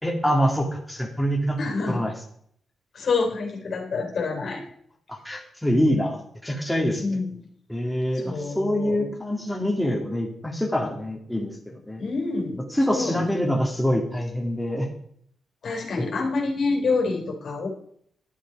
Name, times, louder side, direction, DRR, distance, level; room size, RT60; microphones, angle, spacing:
voice 1, 0.0-1.6 1.9-2.1 5.1-7.2 7.7-12.0 12.7-14.9 16.0-16.1, equal, 5° left, 0 dB, 2.7 m, -25 dB
voice 2, 1.6-2.0 2.9-4.6 7.0-7.5 8.1-9.1 12.0-12.6 12.9-13.3 15.6-17.7, left 4 dB, 65° left, 2 dB, 3.4 m, -27 dB
11.0 x 10.0 x 5.0 m, 0.65 s
cardioid pair, 75°, 0 cm